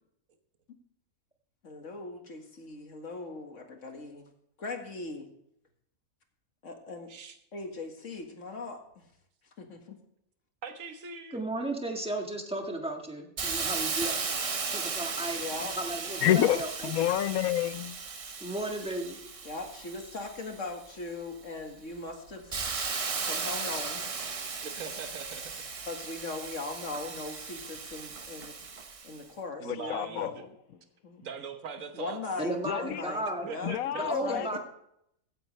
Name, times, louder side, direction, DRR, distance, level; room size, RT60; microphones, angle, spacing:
voice 1, 1.6-4.3 4.6-5.3 6.6-7.1 7.5-9.0 9.6-10.0 15.4-15.8 16.2-16.6 19.4-23.0 23.2-24.0 25.9-28.6 29.0-30.5 31.0-31.2 31.9-33.7 34.0-34.6, left 3 dB, 60° left, 2.1 m, -39 dB
voice 2, 10.6-11.4 24.6-25.6 29.6-30.4 31.2-32.2 33.4-34.1, right 6 dB, 65° right, 1.5 m, -41 dB
voice 3, 11.3-15.4 15.8-16.7 18.4-19.2 32.4-33.5 33.9-34.6, right 1 dB, 5° right, 1.6 m, -34 dB
Hiss, 13.4-20.9 21.5-29.2, right 5 dB, 35° right, 0.6 m, -36 dB
voice 4, 16.2-18.0 29.6-30.3 32.6-33.0 33.6-34.6, left 12 dB, 80° left, 1.1 m, -28 dB
15.5 x 9.9 x 3.3 m
omnidirectional pair, 1.5 m